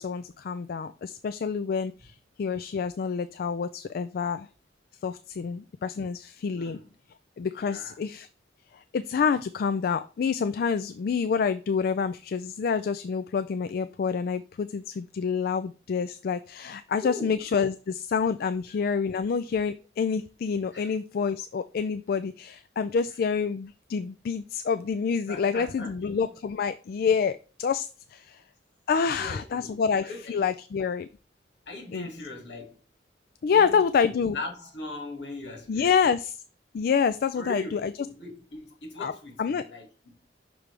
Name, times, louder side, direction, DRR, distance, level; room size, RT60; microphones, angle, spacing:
voice 1, 0.0-4.5 5.0-6.8 7.4-8.3 8.7-28.4 28.9-31.1 31.9-32.1 33.4-34.4 35.7-36.4 36.7-37.9 39.0-39.1 39.4-39.6, left 6 dB, 55° left, 0.3 m, -27 dB
voice 2, 6.5-6.9 7.6-8.0 17.0-17.4 18.7-18.8 20.7-20.9 25.3-26.3 29.2-30.4 31.7-32.7 33.5-36.0 37.3-39.9, left 2 dB, 75° left, 2.3 m, -40 dB
6.1 x 5.1 x 3.3 m
head